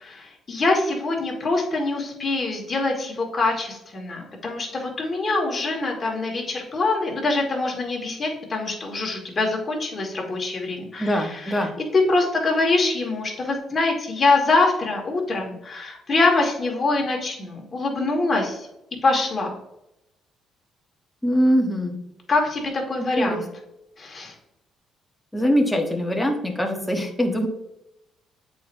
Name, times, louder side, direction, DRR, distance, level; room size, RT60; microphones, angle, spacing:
voice 1, 0.0-18.7 19.0-19.5 22.3-23.5 24.0-24.3, left 3 dB, 35° left, 0 dB, 1.7 m, -24 dB
voice 2, 11.0-11.7 21.2-21.9 23.2-23.4 25.3-27.5, equal, 5° left, 2 dB, 1.0 m, -22 dB
8.2 x 4.4 x 2.6 m, 0.85 s
cardioid pair, 105°, 0 cm